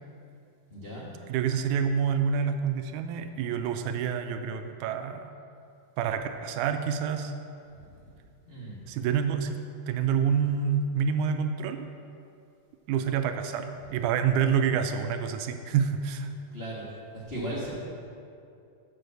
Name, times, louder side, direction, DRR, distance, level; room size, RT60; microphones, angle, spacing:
voice 1, 0.7-1.1 7.7-8.1 8.5-8.8 16.5-16.9 17.1-17.7, right 1 dB, 55° left, -7 dB, 0.6 m, -37 dB
voice 2, 1.3-5.3 6.0-7.3 8.9-11.9 12.9-16.3, right 7 dB, 80° right, 8 dB, 1.9 m, -27 dB
7.7 x 6.3 x 6.7 m, 2.5 s
omnidirectional pair, 3.5 m